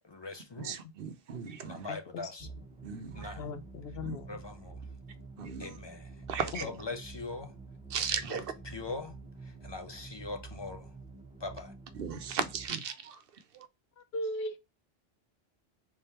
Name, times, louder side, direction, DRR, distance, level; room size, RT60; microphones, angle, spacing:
voice 1, 0.0-0.8 1.6-2.5 3.1-3.5 4.3-4.8 5.6-7.6 8.1-10.9 11.4-11.7, left 3 dB, 40° left, 0.4 m, -42 dB
voice 2, 0.6-1.9 2.8-3.3 4.1-4.2 5.4-5.7 6.3-6.6 7.9-8.4 12.0-13.2 13.5-13.7, right 7 dB, 65° right, 0.8 m, -36 dB
voice 3, 1.9-2.3 3.4-4.4 6.5-6.7 14.0-14.6, left 2 dB, 75° left, 0.9 m, -38 dB
sound 1, 2.4-12.7, right 4 dB, 5° right, 0.8 m, -48 dB
3.6 x 3.5 x 4.2 m
omnidirectional pair, 1.1 m